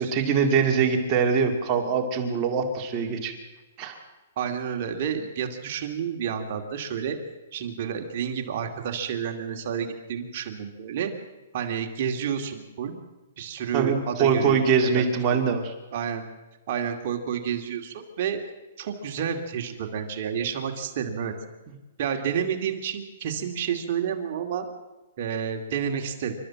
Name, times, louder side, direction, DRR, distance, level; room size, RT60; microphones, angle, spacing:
voice 1, 0.0-3.3 3.8-4.0 13.7-15.7, right 6 dB, 25° right, 3 dB, 2.2 m, -23 dB
voice 2, 4.4-7.2 7.5-11.1 11.5-13.0 13.4-14.6 14.9-15.0 15.3-15.4 15.9-16.2 16.7-18.4 18.8-21.3 22.0-24.7 25.2-26.3, right 8 dB, 45° right, 4 dB, 2.3 m, -30 dB
27.5 x 13.0 x 7.5 m, 1.1 s
hypercardioid pair, 155°, 0 cm